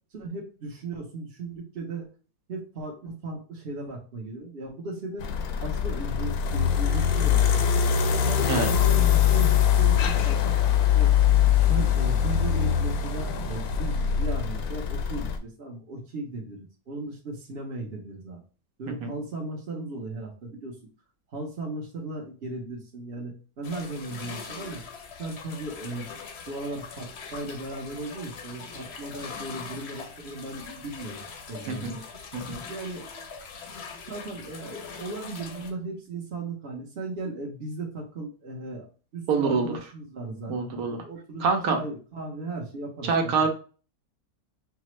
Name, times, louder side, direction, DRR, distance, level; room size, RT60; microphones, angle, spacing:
voice 1, 0.1-2.1 2.5-5.3 5.6-7.7 8.2-10.5 10.9-11.1 11.6-18.4 18.8-20.8 21.3-24.8 25.2-26.1 26.5-32.0 32.7-33.0 34.1-38.9 39.1-43.5, right 2 dB, 50° right, -3 dB, 1.0 m, -36 dB
sound 1, 5.2-15.4, left 9 dB, 80° left, 1.1 m, -22 dB
sound 2, 23.6-35.7, left 5 dB, 55° left, 0.8 m, -42 dB
voice 2, 39.3-39.7 40.5-41.0 41.4-41.8 43.0-43.5, right 4 dB, 75° right, 4 dB, 1.1 m, -25 dB
5.7 x 2.1 x 3.0 m, 0.36 s
omnidirectional pair, 1.6 m